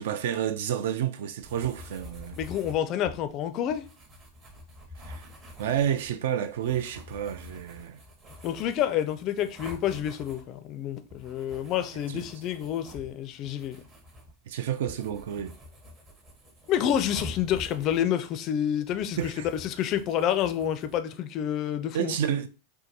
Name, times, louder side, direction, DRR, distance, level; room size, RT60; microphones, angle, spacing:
voice 1, 0.0-2.4 5.0-5.3 5.6-8.0 11.9-12.3 14.5-15.5 19.2-19.5 21.9-22.5, right 9 dB, 55° right, 0.3 m, -30 dB
sound 1, 1.4-21.0, left 1 dB, 25° right, 0.8 m, -47 dB
voice 2, 2.4-3.9 8.4-13.8 16.7-22.1, left 10 dB, 35° left, 0.3 m, -28 dB
4.4 x 2.2 x 2.7 m
figure-of-eight pair, 90°, 0 cm